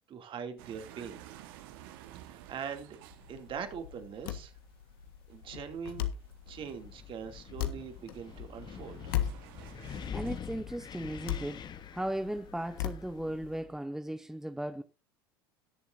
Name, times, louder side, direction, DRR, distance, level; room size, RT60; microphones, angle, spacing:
voice 1, 0.1-1.2 2.2-3.0 3.3-4.5 5.3-6.1 6.5-9.1, right 7 dB, 45° right, 2.7 m, -42 dB
sound 1, 0.6-10.4, right 12 dB, 70° right, 1.5 m, -54 dB
sound 2, 3.1-13.6, left 12 dB, 75° left, 1.5 m, -39 dB
Wind, 6.5-13.8, left 8 dB, 35° left, 1.1 m, -46 dB
voice 2, 10.1-14.8, right 1 dB, 5° right, 0.8 m, -37 dB
20.5 x 7.1 x 2.7 m
hypercardioid pair, 75°, 13 cm